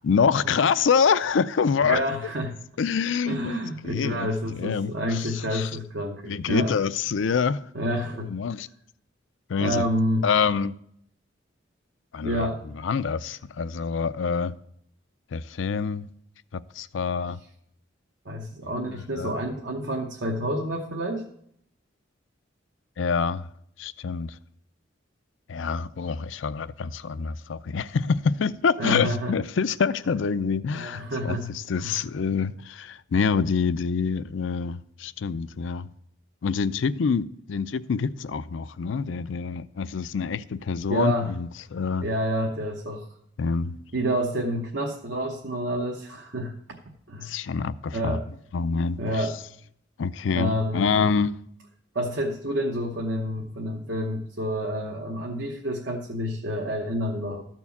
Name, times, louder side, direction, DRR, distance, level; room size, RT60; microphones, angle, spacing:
voice 1, 0.0-2.0 2.8-3.6 3.8-5.7 6.2-7.6 8.3-8.7 9.5-9.8 10.2-10.7 12.1-12.5 12.8-14.5 15.3-16.0 16.5-17.4 18.8-19.3 23.0-23.5 23.8-24.3 25.5-31.4 31.7-35.9 36.4-42.1 43.4-43.8 47.2-48.2 48.5-49.3 50.0-51.4, left 5 dB, 80° left, 0.4 m, -26 dB
voice 2, 1.8-2.5 3.3-6.7 7.7-8.3 9.6-10.2 12.2-12.6 18.2-21.2 28.8-29.3 30.7-32.0 40.9-41.3 42.0-43.1 43.9-46.5 47.1-47.3 47.9-48.3 49.0-49.3 50.3-51.1 51.9-57.4, equal, 70° right, 1.0 m, -28 dB
13.5 x 4.5 x 7.1 m
head